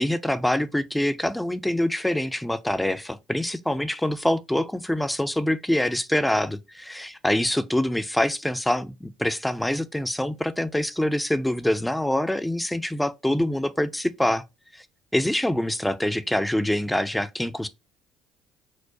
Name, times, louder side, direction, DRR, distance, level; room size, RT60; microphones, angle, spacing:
voice 1, 0.0-14.4 14.7-14.8 15.1-17.7, left 1 dB, 5° left, 0.4 m, -25 dB
4.5 x 2.1 x 2.6 m
supercardioid pair, 70°, 0 cm